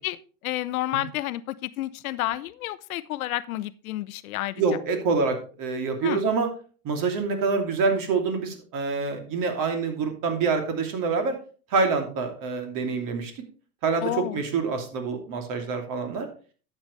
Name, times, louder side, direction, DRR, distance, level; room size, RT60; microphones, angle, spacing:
voice 1, 0.4-4.6 6.0-6.2 14.0-14.4, left 15 dB, 65° left, 16 dB, 0.7 m, -30 dB
voice 2, 4.6-6.5 6.8-11.3 11.7-13.4 13.8-16.3, right 4 dB, 45° right, 4 dB, 2.8 m, -26 dB
12.0 x 8.1 x 3.2 m, 0.39 s
hypercardioid pair, 90°, 47 cm